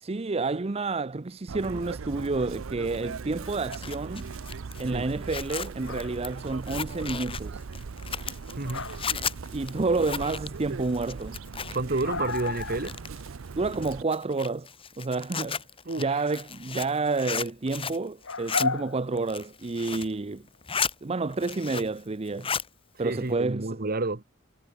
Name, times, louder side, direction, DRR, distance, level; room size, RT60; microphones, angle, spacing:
voice 1, 0.0-4.3 4.8-7.6 9.5-11.4 13.6-14.7 15.0-15.6 16.0-20.4 21.0-22.5 23.0-23.8, right 3 dB, 30° right, 0.6 m, -29 dB
Chirp tweet, 1.5-14.0, right 5 dB, 80° right, 0.6 m, -39 dB
Zipper (clothing), 3.5-12.0 12.3-13.3 13.7-18.0 18.3-18.7 19.1-20.1 20.5-20.9 21.3-22.0 22.3-22.7, left 6 dB, 25° left, 1.5 m, -34 dB
sound 1, 5.8-6.2 8.4-9.3 9.5-10.0 10.5-10.6 10.9-11.0 11.2-11.3 11.5-13.0 13.3-13.4 13.9-14.2 16.6-16.7 18.2-19.7 20.4-20.8 22.6-22.7 23.0-23.2, left 4 dB, 80° left, 2.5 m, -35 dB
voice 2, 8.6-8.9 11.7-13.0 15.8-16.2 23.0-24.2, right 2 dB, 50° right, 1.4 m, -30 dB
head